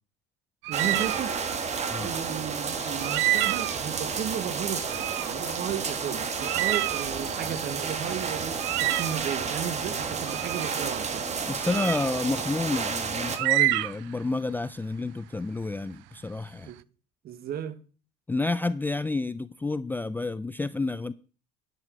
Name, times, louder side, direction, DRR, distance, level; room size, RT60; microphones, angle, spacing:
sound 1, 0.6-1.2 3.0-3.9 4.9-5.3 5.7-5.8 6.4-7.8 8.6-9.2 10.3-10.7 11.6-12.1 13.3-14.2, right 20 dB, 70° right, 0.5 m, -28 dB
sound 2, 0.7-13.4, right 5 dB, 35° right, 1.6 m, -31 dB
voice 1, 0.7-1.4 1.9-11.3 16.7-16.8 17.2-17.8, right 9 dB, 50° right, 1.3 m, -34 dB
sound 3, 2.5-4.2 4.6-6.3 6.5-9.7, left 7 dB, 65° left, 2.7 m, -52 dB
voice 2, 11.5-16.7 18.3-21.1, left 3 dB, 10° left, 0.4 m, -30 dB
10.5 x 4.9 x 6.5 m
supercardioid pair, 90°, 20 cm